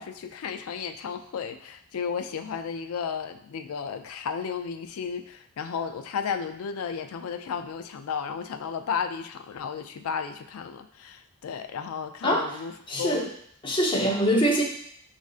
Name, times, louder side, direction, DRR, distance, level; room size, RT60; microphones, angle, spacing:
voice 1, 0.0-13.3, left 6 dB, 80° left, 8 dB, 0.4 m, -33 dB
voice 2, 12.9-13.3 13.6-14.6, equal, 25° left, -1 dB, 0.7 m, -23 dB
6.1 x 2.5 x 2.4 m, 0.66 s
head